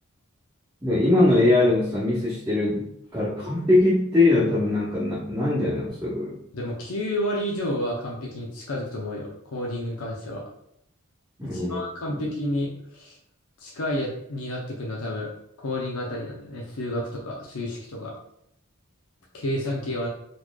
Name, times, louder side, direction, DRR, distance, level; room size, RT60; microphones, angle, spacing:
voice 1, 0.8-6.4 11.4-11.9, left 2 dB, 15° right, -9 dB, 0.8 m, -22 dB
voice 2, 6.5-10.4 11.4-13.2 13.6-15.3 15.6-18.1 19.3-20.1, left 1 dB, 85° left, -2 dB, 0.7 m, -30 dB
4.1 x 3.1 x 2.3 m, 0.74 s
head